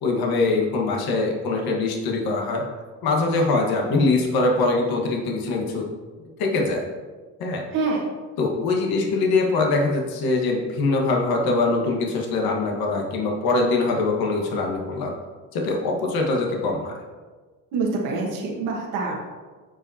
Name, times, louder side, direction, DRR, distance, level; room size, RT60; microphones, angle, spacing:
voice 1, 0.0-2.6 3.0-5.9 6.4-6.8 7.4-7.6 8.4-15.1 15.5-16.9, left 3 dB, 70° left, 0 dB, 1.5 m, -23 dB
voice 2, 17.7-19.1, right 4 dB, 90° right, -3 dB, 1.7 m, -25 dB
13.0 x 5.1 x 2.8 m, 1.4 s
supercardioid pair, 85°, 38 cm